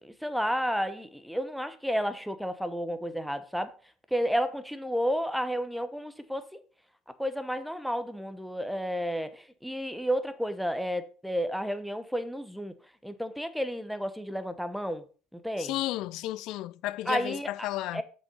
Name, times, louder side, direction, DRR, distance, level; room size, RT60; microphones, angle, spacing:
voice 1, 0.0-3.7 4.1-6.5 7.2-12.7 13.0-15.0 15.3-15.7 17.1-17.5 17.9-18.0, equal, ahead, 1.0 m, -31 dB
voice 2, 15.6-18.0, left 15 dB, 60° left, 0.4 m, -33 dB
7.0 x 5.3 x 5.4 m
hypercardioid pair, 75°, 0 cm